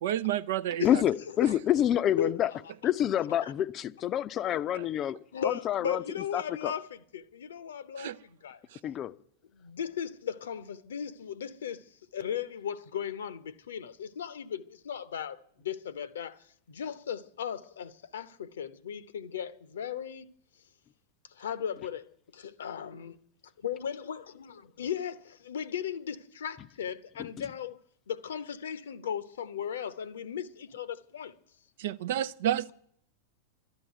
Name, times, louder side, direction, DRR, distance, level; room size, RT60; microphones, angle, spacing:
voice 1, 0.0-1.0 4.8-4.9 8.0-8.2 8.7-8.8 31.8-32.7, right 11 dB, 55° right, 0.5 m, -30 dB
voice 2, 0.8-2.5 2.8-5.2 5.4-6.0 6.3-6.7 8.8-9.1, left 11 dB, 30° left, 0.6 m, -27 dB
voice 3, 2.2-2.7 3.4-3.5 5.3-8.6 9.5-20.3 21.2-23.1 23.6-27.8 28.1-31.3, left 8 dB, 65° left, 0.8 m, -37 dB
12.5 x 11.0 x 9.0 m
figure-of-eight pair, 90°, 0 cm